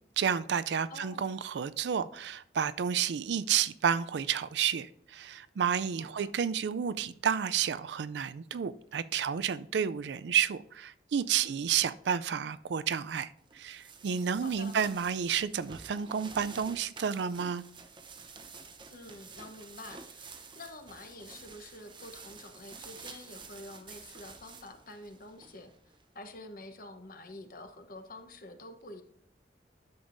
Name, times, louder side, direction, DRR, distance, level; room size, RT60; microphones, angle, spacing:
voice 1, 0.2-17.6, right 8 dB, 75° right, 0.4 m, -31 dB
voice 2, 0.9-1.2 6.0-6.3 11.4-11.5 14.4-14.8 18.9-25.7 26.1-29.0, left 2 dB, 55° left, 0.9 m, -48 dB
sound 1, 13.5-26.0, right 4 dB, 25° right, 0.8 m, -50 dB
10.5 x 7.0 x 2.6 m
head